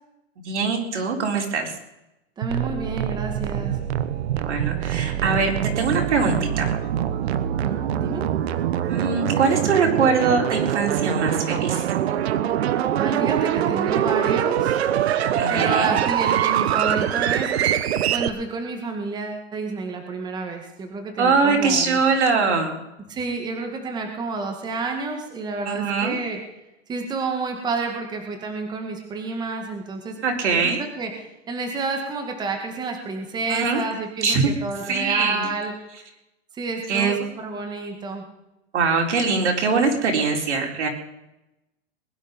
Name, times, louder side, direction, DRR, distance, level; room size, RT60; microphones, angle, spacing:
voice 1, 0.4-1.7 4.4-6.7 8.9-11.8 15.4-15.9 21.2-22.8 25.7-26.2 30.2-30.8 33.5-33.8 34.2-34.5 34.9-35.5 36.9-37.2 38.7-40.9, right 4 dB, 90° right, 2 dB, 4.1 m, -22 dB
voice 2, 2.4-3.8 7.6-8.3 13.0-14.8 15.5-17.5 18.1-22.0 23.1-26.4 26.9-30.2 30.6-31.1 31.5-35.7 36.5-38.2, right 3 dB, 10° right, 3 dB, 1.9 m, -29 dB
sound 1, 2.4-18.3, right 10 dB, 65° right, 1.2 m, -24 dB
21.0 x 11.0 x 5.3 m, 0.92 s
supercardioid pair, 160°, 34 cm